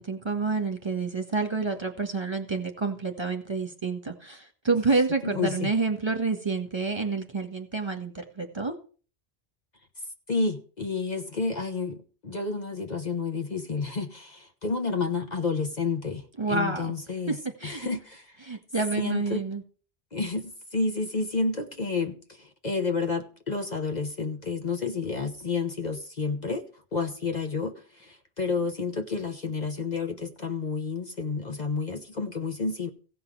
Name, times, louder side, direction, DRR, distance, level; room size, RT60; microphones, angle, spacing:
voice 1, 0.0-8.7 16.4-16.9 17.3-17.9 18.4-19.6, right 4 dB, 25° right, 4 dB, 1.8 m, -28 dB
voice 2, 5.2-5.7 10.3-17.4 17.6-18.6 19.0-19.4 20.1-26.6 26.9-32.9, left 4 dB, 45° left, 5 dB, 1.2 m, -30 dB
16.0 x 5.6 x 6.7 m, 0.39 s
omnidirectional pair, 1.0 m